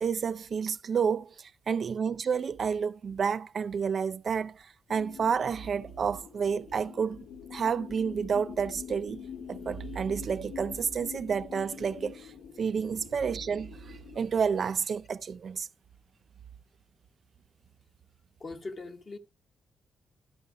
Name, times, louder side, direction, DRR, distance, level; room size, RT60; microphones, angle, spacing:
voice 1, 0.0-7.3 7.5-12.3 12.6-15.7, right 6 dB, 45° right, 0.4 m, -30 dB
sound 1, 4.9-14.3, left 7 dB, 85° left, 1.5 m, -45 dB
voice 2, 18.4-19.2, left 3 dB, 35° left, 1.0 m, -40 dB
12.0 x 5.5 x 4.9 m
cardioid pair, 140°, 0 cm